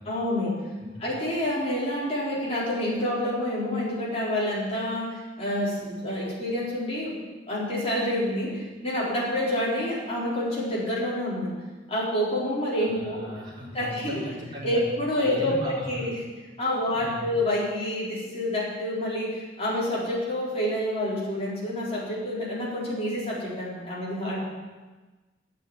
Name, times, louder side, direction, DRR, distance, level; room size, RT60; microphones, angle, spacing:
voice 1, 0.1-0.6 1.0-7.2 7.5-11.5 11.9-13.3 13.7-14.2 14.6-16.2 16.6-24.4, left 1 dB, 35° left, -7 dB, 4.3 m, -28 dB
voice 2, 12.8-14.8 15.2-16.0 16.9-17.3, equal, 25° right, -9 dB, 4.4 m, -37 dB
9.1 x 7.2 x 9.0 m, 1.3 s
head